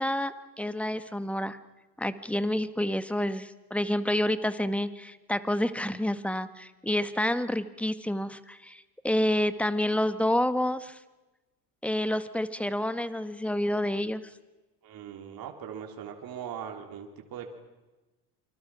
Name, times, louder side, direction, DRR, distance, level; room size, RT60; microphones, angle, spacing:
voice 1, 0.0-1.6 2.0-11.0 11.8-14.2, left 1 dB, 5° left, 12 dB, 1.6 m, -29 dB
voice 2, 14.8-17.5, right 8 dB, 45° right, 2 dB, 3.7 m, -40 dB
28.0 x 25.5 x 6.1 m, 1.1 s
hypercardioid pair, 70°, 49 cm